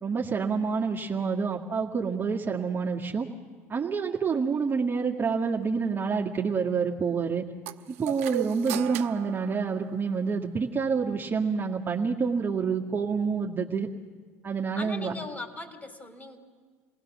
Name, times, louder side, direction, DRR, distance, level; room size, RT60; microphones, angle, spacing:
voice 1, 0.0-3.3 3.7-7.5 7.9-13.9 14.4-15.1, right 5 dB, 30° right, -2 dB, 2.0 m, -28 dB
sound 1, 7.7-10.3, right 14 dB, 75° right, 0.8 m, -37 dB
voice 2, 14.7-16.4, left 2 dB, 20° left, 6 dB, 3.9 m, -39 dB
28.5 x 19.5 x 6.2 m, 1.5 s
hypercardioid pair, 65°, 8 cm